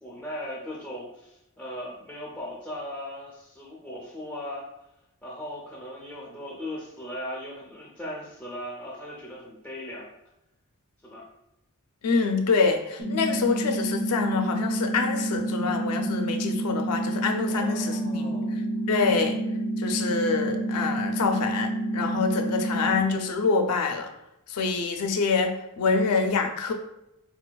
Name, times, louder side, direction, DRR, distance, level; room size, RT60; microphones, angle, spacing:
voice 1, 0.0-4.7 5.2-10.1 11.0-11.3 17.4-18.7, left 1 dB, 10° left, -5 dB, 0.4 m, -38 dB
voice 2, 12.0-18.3 18.9-19.4 19.8-24.1 24.5-26.7, left 4 dB, 90° left, 4 dB, 0.4 m, -26 dB
sound 1, 13.0-23.0, right 1 dB, 75° right, 0.7 m, -29 dB
4.2 x 2.2 x 2.2 m, 0.85 s
head